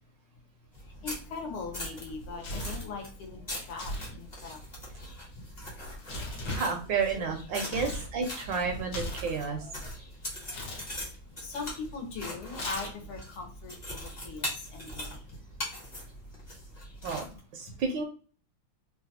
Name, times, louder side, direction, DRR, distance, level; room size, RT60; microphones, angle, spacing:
sound 1, 0.7-17.4, left 1 dB, 30° left, 0.7 m, -42 dB
voice 1, 1.0-4.6 6.2-6.4 7.7-7.9 9.5-10.0 10.5-10.6 11.4-15.2, left 4 dB, 80° left, 4 dB, 1.7 m, -41 dB
Tearing, 2.0-2.9 3.7-4.1 4.4-8.1 8.4-9.9 10.5-10.8 12.5-13.2, left 1 dB, 60° left, 1.4 m, -38 dB
voice 2, 6.5-9.6 17.0-18.0, right 5 dB, 75° right, 3 dB, 1.2 m, -31 dB
3.8 x 2.3 x 2.7 m, 0.39 s
omnidirectional pair, 2.3 m